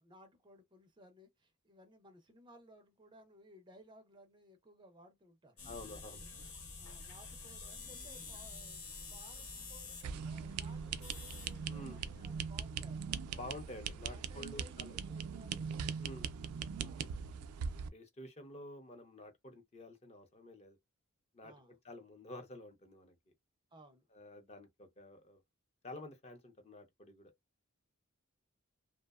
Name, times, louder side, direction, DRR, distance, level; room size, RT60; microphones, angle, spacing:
voice 1, 0.0-5.7 6.2-6.4 6.8-13.4 14.1-15.7 16.7-17.2 21.4-21.8 23.7-24.1, right 1 dB, 20° right, 0.4 m, -60 dB
sound 1, 5.6-12.2, left 3 dB, 90° left, 1.1 m, -49 dB
voice 2, 5.6-6.4 11.7-12.0 13.4-14.9 16.0-16.3 17.9-20.8 21.3-21.5 21.8-23.2 24.1-25.4 25.8-27.3, left 1 dB, 30° left, 0.6 m, -50 dB
sound 2, 10.0-17.9, right 6 dB, 90° right, 0.3 m, -41 dB
2.6 x 2.0 x 2.3 m
head